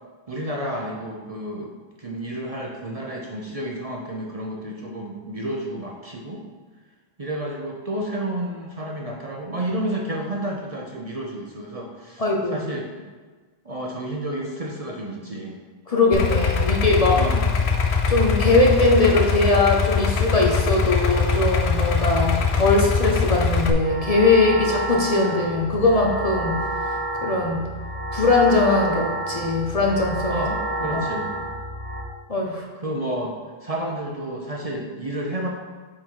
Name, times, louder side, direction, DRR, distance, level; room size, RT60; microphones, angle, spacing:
voice 1, 0.3-6.4 7.2-12.2 12.5-12.9 13.6-15.6 17.1-17.5 30.3-31.3 32.8-35.5, right 1 dB, 40° right, -1 dB, 0.7 m, -31 dB
voice 2, 12.2-12.6 15.9-17.2 18.1-27.6 28.1-30.5 30.9-31.0 32.3-32.6, left 2 dB, 40° left, -1 dB, 0.8 m, -20 dB
Idling, 16.1-23.7, left 5 dB, 75° left, 0.9 m, -22 dB
sound 1, 23.8-32.0, right 1 dB, 85° right, 1.3 m, -29 dB
7.9 x 3.8 x 4.6 m, 1.4 s
omnidirectional pair, 1.1 m